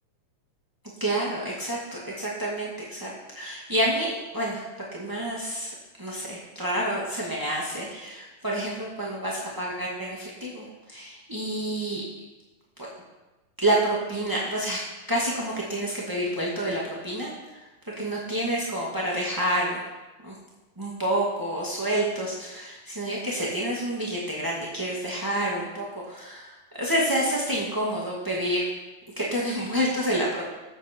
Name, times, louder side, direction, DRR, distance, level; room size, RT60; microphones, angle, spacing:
voice 1, 1.0-4.6 4.9-12.0 13.6-14.8 15.1-17.6 18.0-19.8 20.2-20.3 20.8-28.7 29.2-30.5, right 1 dB, 15° right, -5 dB, 0.7 m, -28 dB
19.5 x 8.1 x 4.5 m, 1.1 s
omnidirectional pair, 4.2 m